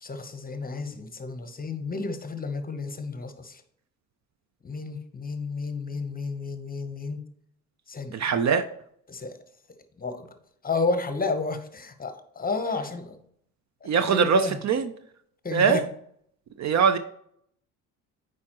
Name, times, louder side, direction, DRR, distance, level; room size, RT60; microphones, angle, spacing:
voice 1, 0.0-3.6 4.6-7.2 7.9-8.2 9.1-9.4 10.0-10.3 10.6-13.2 14.0-14.6 15.4-15.8, left 3 dB, 20° left, 0.9 m, -31 dB
voice 2, 8.1-8.6 13.9-14.9 15.5-15.8 16.6-17.0, right 6 dB, 40° right, 0.5 m, -22 dB
8.6 x 4.8 x 3.0 m
hypercardioid pair, 60°, 41 cm